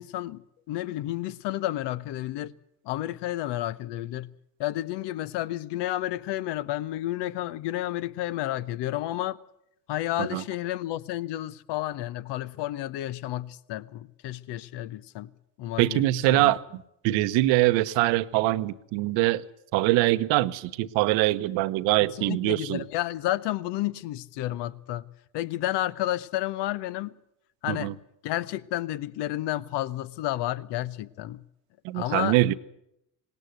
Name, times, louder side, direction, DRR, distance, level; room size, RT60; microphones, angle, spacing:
voice 1, 0.0-2.5 2.8-4.3 4.6-9.4 9.9-15.3 15.6-16.0 16.3-16.5 22.1-25.0 25.3-27.1 27.6-27.9 28.2-31.4 31.9-32.4, left 14 dB, 60° left, 1.0 m, -31 dB
voice 2, 15.8-19.4 19.7-22.8 27.7-27.9 31.8-32.5, right 17 dB, 65° right, 1.0 m, -23 dB
19.0 x 18.0 x 8.0 m
hypercardioid pair, 65°, 48 cm